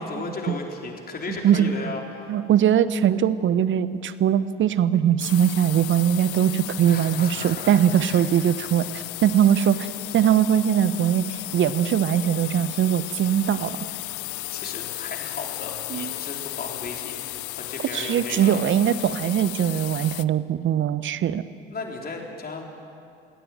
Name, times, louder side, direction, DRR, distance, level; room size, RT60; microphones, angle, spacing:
voice 1, 0.0-2.4 6.8-8.2 9.6-9.7 14.5-18.7 21.7-22.6, left 3 dB, 30° left, 1 dB, 4.0 m, -35 dB
voice 2, 1.3-1.7 2.3-13.8 15.9-16.1 17.9-21.4, right 9 dB, 40° right, 15 dB, 1.0 m, -21 dB
sound 1, 5.2-20.2, left 20 dB, 55° left, 0.6 m, -35 dB
21.5 x 17.0 x 9.1 m, 2.5 s
figure-of-eight pair, 55°, 29 cm